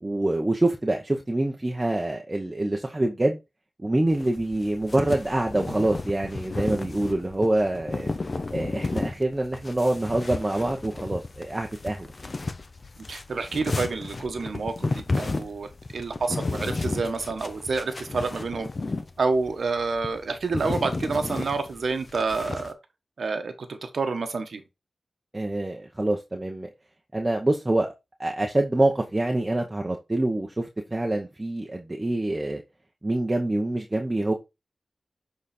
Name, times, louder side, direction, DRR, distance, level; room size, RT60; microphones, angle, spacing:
voice 1, 0.0-3.4 3.8-8.2 8.5-12.1 25.3-26.7 27.1-27.9 28.2-32.6 33.0-34.3, right 1 dB, 20° right, 0.9 m, -26 dB
sound 1, 4.1-22.7, left 3 dB, 45° left, 1.0 m, -33 dB
voice 2, 13.1-18.7 19.2-22.7 23.2-24.6, right 4 dB, 80° right, 1.3 m, -28 dB
7.5 x 4.1 x 4.3 m
wide cardioid pair, 110°, 0 cm